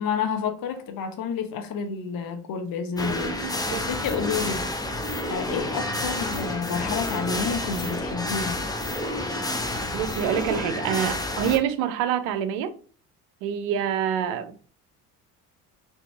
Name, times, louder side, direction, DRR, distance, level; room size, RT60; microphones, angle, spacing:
voice 1, 0.0-3.6 3.9-4.9 5.3-8.6, left 6 dB, 45° left, 0.9 m, -30 dB
sound 1, 3.0-11.6, left 1 dB, 10° left, 0.8 m, -29 dB
voice 2, 3.0-3.9 9.9-12.7 13.4-14.5, right 9 dB, 75° right, 0.8 m, -27 dB
4.5 x 2.8 x 3.2 m
hypercardioid pair, 65°, 48 cm